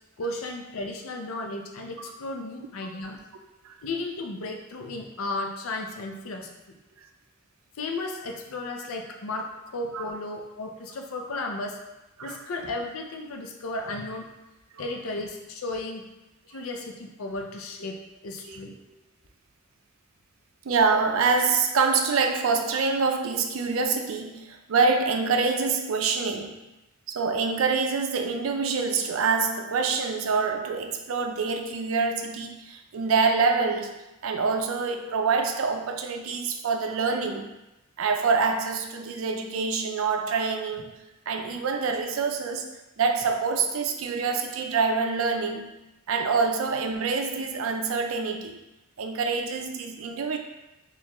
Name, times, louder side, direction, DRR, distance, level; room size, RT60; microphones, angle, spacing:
voice 1, 0.2-3.2 3.8-6.5 7.8-11.8 12.2-14.3 14.8-16.0 16.5-18.0 18.2-18.8, left 2 dB, 85° left, 2 dB, 0.5 m, -34 dB
voice 2, 20.6-26.6 27.1-33.9 34.2-37.5 38.0-40.9 41.3-42.7 43.0-45.7 46.1-48.6 49.0-50.4, right 4 dB, 75° right, 4 dB, 0.4 m, -26 dB
4.1 x 2.4 x 3.0 m, 0.98 s
head